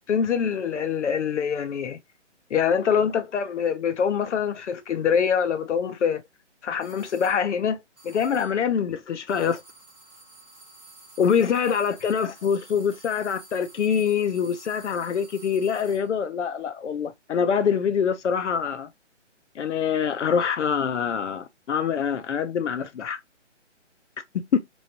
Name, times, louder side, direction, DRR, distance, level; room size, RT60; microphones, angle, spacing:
voice 1, 0.1-2.0 2.5-6.2 6.6-7.8 8.0-9.6 11.2-18.9 19.6-23.2 24.5-24.6, left 7 dB, 75° left, 0.6 m, -24 dB
sound 1, 6.8-7.5 8.0-8.7 9.3-16.1, right 3 dB, 5° right, 0.6 m, -50 dB
3.1 x 3.1 x 2.6 m
hypercardioid pair, 165°, 36 cm